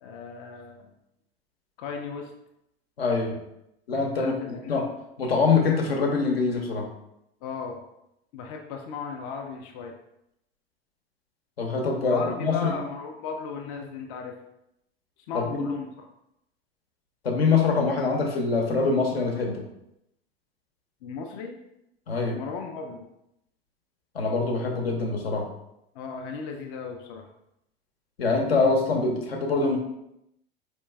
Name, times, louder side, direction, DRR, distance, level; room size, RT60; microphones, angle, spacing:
voice 1, 0.0-0.9 1.8-2.3 4.2-4.8 7.4-7.8 8.3-9.9 12.0-14.3 15.3-15.9 21.0-21.6 22.3-23.1 26.0-27.3, left 5 dB, 35° left, 2 dB, 0.4 m, -36 dB
voice 2, 3.0-3.4 3.9-4.9 5.2-6.8 11.6-12.7 15.5-15.7 17.2-19.6 22.1-22.3 24.1-25.4 28.2-29.8, left 4 dB, 70° left, 1 dB, 0.8 m, -24 dB
4.4 x 3.0 x 2.2 m, 0.82 s
figure-of-eight pair, 80°, 31 cm